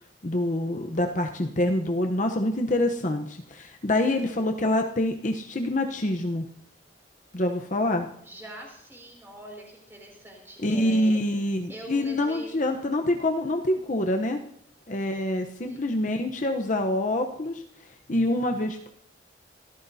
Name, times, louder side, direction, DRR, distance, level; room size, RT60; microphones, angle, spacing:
voice 1, 0.2-6.5 7.3-8.1 10.6-14.4 14.9-17.6 18.1-18.9, left 1 dB, 45° left, 4 dB, 0.9 m, -26 dB
voice 2, 8.2-11.2 11.7-12.9 15.6-15.8, right 1 dB, 15° right, -1 dB, 5.3 m, -43 dB
25.0 x 14.0 x 2.8 m, 0.72 s
head